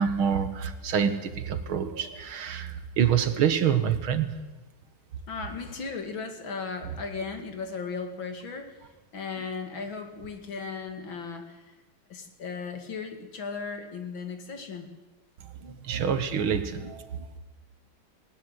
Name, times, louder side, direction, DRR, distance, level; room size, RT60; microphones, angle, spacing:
voice 1, 0.0-4.3 15.6-17.4, right 8 dB, 80° right, 9 dB, 2.2 m, -27 dB
voice 2, 5.3-8.8 9.1-11.7 12.1-14.9, left 5 dB, 70° left, 5 dB, 2.9 m, -36 dB
19.5 x 18.5 x 8.0 m, 1.2 s
omnidirectional pair, 2.3 m